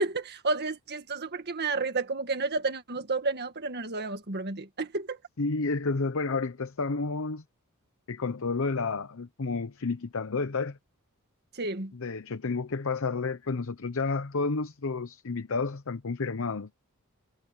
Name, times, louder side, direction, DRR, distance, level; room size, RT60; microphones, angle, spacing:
voice 1, 0.0-5.2 11.5-11.9, right 3 dB, 50° right, 1.8 m, -31 dB
voice 2, 5.4-7.4 8.1-10.8 11.9-16.7, left 4 dB, 65° left, 0.8 m, -30 dB
head